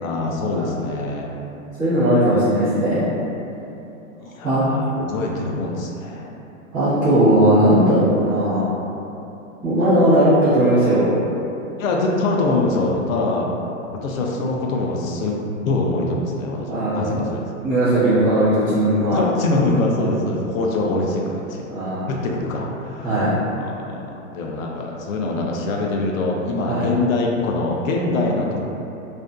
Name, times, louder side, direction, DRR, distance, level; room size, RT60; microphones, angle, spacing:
voice 1, 0.0-1.4 4.2-6.3 11.8-13.5 13.9-17.5 19.1-21.7 22.1-28.6, left 2 dB, 75° left, -1 dB, 0.5 m, -24 dB
voice 2, 1.8-3.1 4.4-4.7 6.7-8.8 9.6-11.1 16.7-17.2 17.6-19.2 21.7-22.1 23.0-23.3 26.7-26.8, right 1 dB, 5° right, -21 dB, 0.4 m, -18 dB
2.5 x 2.2 x 2.3 m, 2.8 s
supercardioid pair, 175°, 41 cm